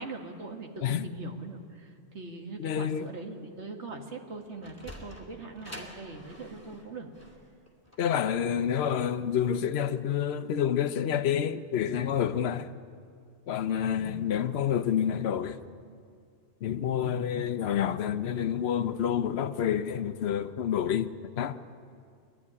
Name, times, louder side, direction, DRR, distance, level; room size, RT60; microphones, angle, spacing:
voice 1, 0.0-7.1 14.0-14.3 17.0-17.8, right 3 dB, 70° right, 2.1 m, -42 dB
voice 2, 2.6-3.1 8.0-12.7 13.5-15.6 16.6-21.6, left 9 dB, 65° left, 1.0 m, -28 dB
Sliding door, 4.3-9.5, left 1 dB, 10° left, 2.5 m, -48 dB
22.5 x 12.5 x 9.8 m
omnidirectional pair, 1.2 m